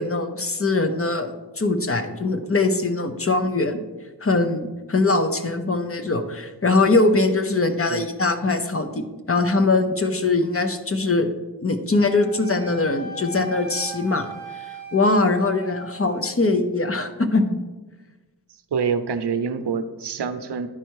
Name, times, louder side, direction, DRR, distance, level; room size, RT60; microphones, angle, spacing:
voice 1, 0.0-3.8 4.2-11.3 11.6-14.3 14.5-17.6, left 3 dB, 35° left, 7 dB, 0.8 m, -22 dB
Wind instrument woodwind instrument, 12.0-16.3, right 2 dB, 75° left, 3.0 m, -38 dB
voice 2, 18.7-20.7, right 6 dB, 75° right, 10 dB, 0.7 m, -26 dB
10.5 x 4.4 x 4.7 m, 1.2 s
wide cardioid pair, 95°, 41 cm